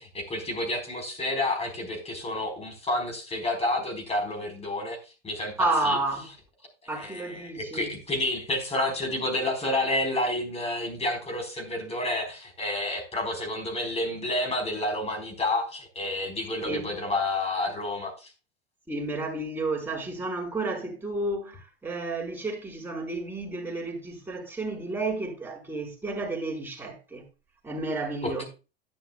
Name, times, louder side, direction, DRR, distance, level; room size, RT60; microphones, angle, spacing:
voice 1, 0.0-5.0 5.2-6.3 6.8-18.3 28.2-28.4, left 1 dB, 20° left, 4.3 m, -30 dB
voice 2, 5.6-6.3 6.9-7.9 16.6-16.9 18.9-27.2 27.6-28.4, right 2 dB, 5° right, 5.1 m, -31 dB
12.0 x 10.0 x 2.3 m
figure-of-eight pair, 85°, 32 cm